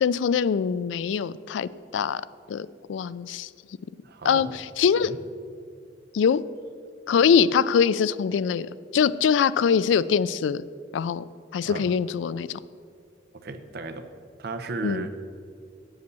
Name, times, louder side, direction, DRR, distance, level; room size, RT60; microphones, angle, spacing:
voice 1, 0.0-2.2 2.5-3.5 4.2-5.1 6.1-6.4 7.1-8.7 8.9-10.7 10.9-11.2 11.5-12.6 14.8-15.0, left 7 dB, 80° left, 18 dB, 0.3 m, -23 dB
voice 2, 4.0-4.5 5.0-5.2 11.6-11.9 13.3-14.1 14.4-15.1, right 3 dB, 60° right, 9 dB, 0.7 m, -35 dB
8.1 x 7.9 x 6.8 m, 2.2 s
head